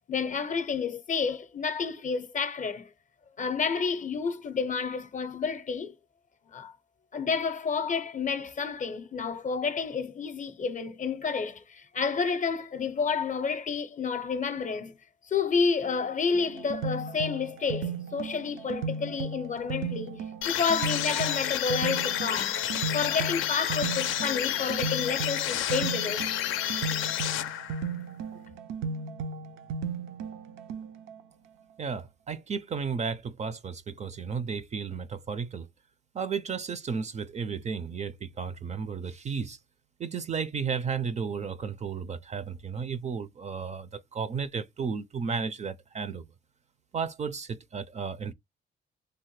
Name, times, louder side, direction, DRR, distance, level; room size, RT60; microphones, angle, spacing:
voice 1, 0.1-2.9 3.4-5.9 6.5-6.7 7.1-14.9 15.3-22.6 22.9-26.3, left 5 dB, 40° left, 0.6 m, -30 dB
sound 1, 16.3-31.2, right 4 dB, 85° right, 0.5 m, -36 dB
sound 2, 20.4-27.9, left 11 dB, 85° left, 0.5 m, -30 dB
voice 2, 31.8-35.7 36.1-39.6 40.0-46.2 46.9-48.3, right 6 dB, 35° right, 0.4 m, -33 dB
3.3 x 2.1 x 3.1 m
cardioid pair, 90°, 20 cm